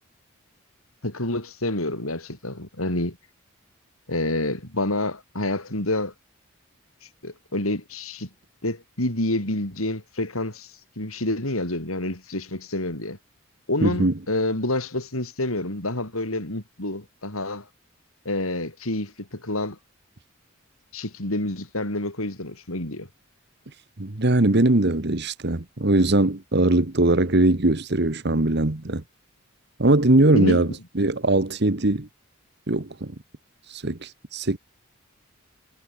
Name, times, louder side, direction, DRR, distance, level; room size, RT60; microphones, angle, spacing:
voice 1, 1.0-3.2 4.1-6.1 7.2-8.3 8.6-13.2 13.7-17.7 18.2-19.8 20.9-23.1 30.3-30.6, left 1 dB, 90° left, 6.2 m, -28 dB
voice 2, 13.8-14.1 24.0-29.0 29.8-30.7 30.9-32.1 32.7-33.1 33.7-34.6, right 2 dB, 50° right, 1.4 m, -21 dB
head